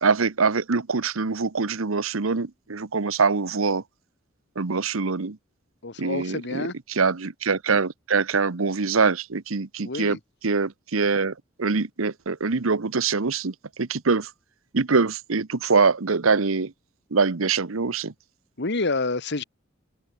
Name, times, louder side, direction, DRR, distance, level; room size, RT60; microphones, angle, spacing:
voice 1, 0.0-3.8 4.6-5.4 6.0-10.2 10.4-11.3 11.6-14.3 14.7-16.7 17.1-18.1, right 4 dB, 85° right, 1.0 m, -24 dB
voice 2, 5.8-6.7 9.8-10.2 18.6-19.4, left 3 dB, 60° left, 1.7 m, -28 dB
head